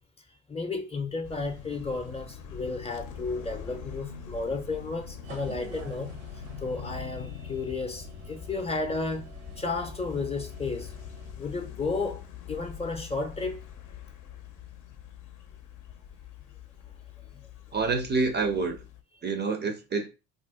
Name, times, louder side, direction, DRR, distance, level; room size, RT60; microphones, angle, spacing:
voice 1, 0.5-10.9 11.4-13.6 17.3-17.5, left 3 dB, 15° left, 0.6 m, -33 dB
sound 1, 1.2-19.0, left 8 dB, 60° left, 0.6 m, -43 dB
sound 2, 5.2-11.3, right 2 dB, 85° right, 0.8 m, -46 dB
voice 2, 17.7-18.8 19.2-20.1, right 4 dB, 30° right, 0.5 m, -27 dB
2.4 x 2.1 x 3.6 m
supercardioid pair, 70°, 35 cm